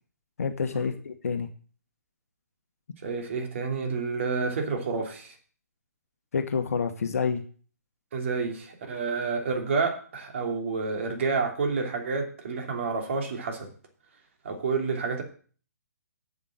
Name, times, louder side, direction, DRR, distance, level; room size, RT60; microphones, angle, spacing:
voice 1, 0.4-1.5 6.3-7.4, left 6 dB, 55° left, 9 dB, 1.1 m, -28 dB
voice 2, 3.0-5.4 8.1-13.7 14.4-15.2, right 4 dB, 45° right, 3 dB, 2.9 m, -29 dB
7.9 x 7.3 x 7.4 m, 0.43 s
figure-of-eight pair, 130°, 9 cm